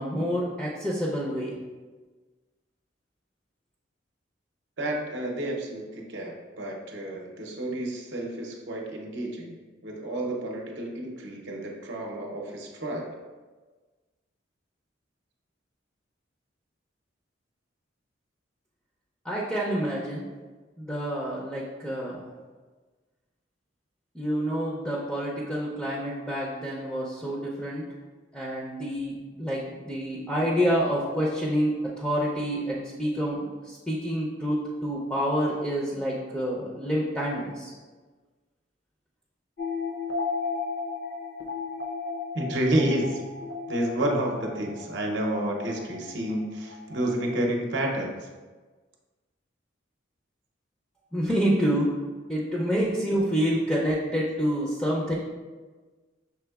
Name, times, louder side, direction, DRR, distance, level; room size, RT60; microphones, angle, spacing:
voice 1, 0.0-1.5 19.2-20.2 20.8-22.3 24.1-27.9 28.3-37.7 51.1-52.0 52.3-55.1, equal, 5° left, -5 dB, 0.5 m, -28 dB
voice 2, 4.8-9.5 9.8-13.2 42.3-43.2 43.7-48.2, right 1 dB, 65° right, 0 dB, 0.7 m, -30 dB
sound 1, 39.6-47.4, left 4 dB, 60° left, 0.6 m, -35 dB
5.9 x 3.5 x 2.3 m, 1.3 s
head